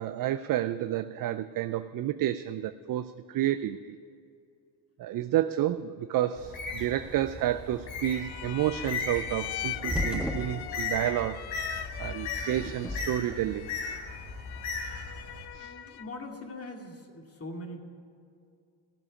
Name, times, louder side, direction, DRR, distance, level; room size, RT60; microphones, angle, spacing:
voice 1, 0.0-4.0 5.0-11.4 12.0-13.7 15.5-15.7, right 12 dB, 45° right, 12 dB, 0.5 m, -30 dB
Bird, 6.4-15.4, left 4 dB, 70° left, 4.3 m, -37 dB
sound 1, 8.1-16.2, left 13 dB, 50° left, 0.7 m, -42 dB
sound 2, 9.1-11.1 12.4-13.4, equal, ahead, 1.5 m, -35 dB
voice 2, 15.5-17.8, left 1 dB, 30° left, 2 dB, 2.3 m, -42 dB
15.5 x 7.0 x 10.0 m, 2.4 s
supercardioid pair, 70°, 49 cm